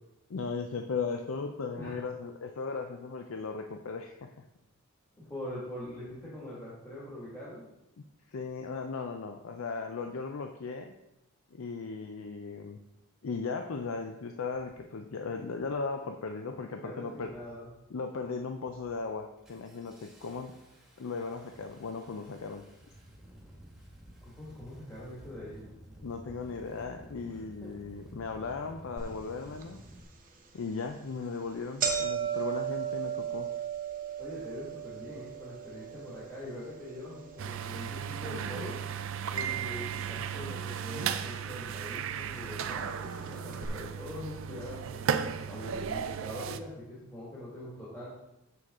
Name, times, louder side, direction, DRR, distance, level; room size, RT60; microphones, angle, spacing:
voice 1, 0.3-4.3 8.0-10.9 11.5-12.8 13.2-17.3 17.9-20.5 21.0-22.6 26.0-29.8 30.5-33.5, left 4 dB, 70° left, 5 dB, 0.5 m, -37 dB
voice 2, 5.2-7.6 16.7-17.7 24.2-25.6 27.2-27.7 34.2-48.1, left 1 dB, 15° left, -9 dB, 1.8 m, -43 dB
Engine starting, 14.8-14.9 15.5-15.9 16.2-16.7 17.2-17.7 18.1-18.3 18.7-30.0, right 1 dB, 5° right, 1.4 m, -53 dB
sound 1, 29.0-29.1 29.6-29.7 30.5-30.7 31.1-31.2 31.4-39.6 39.9-40.6 41.4-41.5 42.5-42.6 42.9-43.0 43.5-43.7, right 8 dB, 40° right, 0.9 m, -36 dB
sound 2, 37.4-46.6, right 7 dB, 65° right, 0.4 m, -35 dB
6.8 x 6.4 x 3.7 m, 0.90 s
head